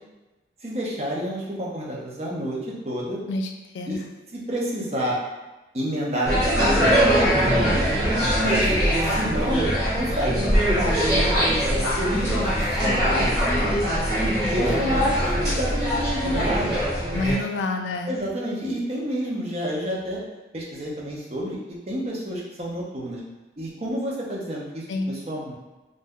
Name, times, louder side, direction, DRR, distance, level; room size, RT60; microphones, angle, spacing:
voice 1, 0.6-2.6 2.8-3.2 3.9-4.0 4.3-5.2 5.7-6.8 7.2-8.1 8.4-8.7 9.1-9.7 9.9-10.9 11.6-13.8 14.2-16.8 17.2-17.5 18.0-20.2 20.5-23.2 23.6-25.5, equal, 35° right, -4 dB, 0.6 m, -29 dB
voice 2, 3.3-4.1 17.1-18.1 24.9-25.1, left 2 dB, 85° left, 5 dB, 0.3 m, -28 dB
sound 1, 6.2-17.3, equal, 20° right, 1.3 m, -22 dB
2.6 x 2.2 x 3.5 m, 1.1 s
head